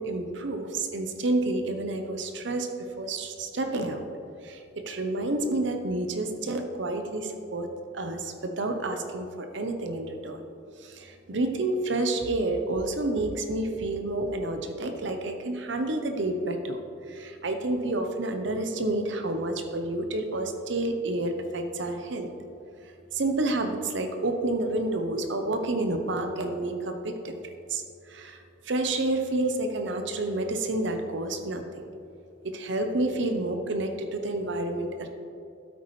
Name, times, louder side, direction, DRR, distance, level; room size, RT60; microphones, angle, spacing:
voice 1, 0.0-2.7 3.0-4.0 4.4-7.7 7.9-10.4 10.8-16.8 17.1-22.3 23.1-27.3 27.7-27.8 28.1-28.4 28.7-31.8 32.4-35.1, right 2 dB, 70° right, 5 dB, 0.8 m, -29 dB
12.5 x 8.4 x 3.2 m, 2.8 s
head